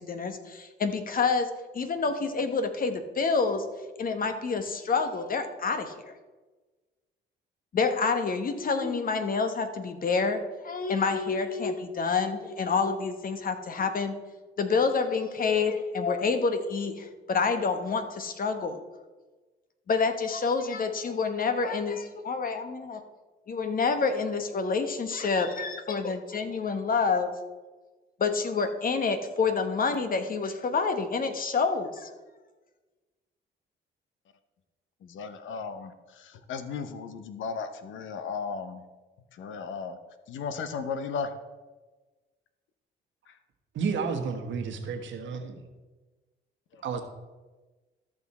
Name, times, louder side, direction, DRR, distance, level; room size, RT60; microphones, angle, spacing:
voice 1, 0.0-1.5 1.7-3.6 4.0-6.1 7.7-14.1 14.6-18.8 19.9-23.0 23.5-27.3 28.2-32.1, left 4 dB, 45° left, 8 dB, 1.2 m, -28 dB
voice 2, 35.0-38.8 39.4-40.0 40.3-41.3 43.3-43.4 46.7-46.8, left 5 dB, 75° left, 10 dB, 0.9 m, -35 dB
voice 3, 43.7-45.6 46.8-47.0, right 5 dB, 70° right, 5 dB, 1.4 m, -31 dB
13.5 x 6.1 x 4.3 m, 1.3 s
cardioid pair, 90°, 20 cm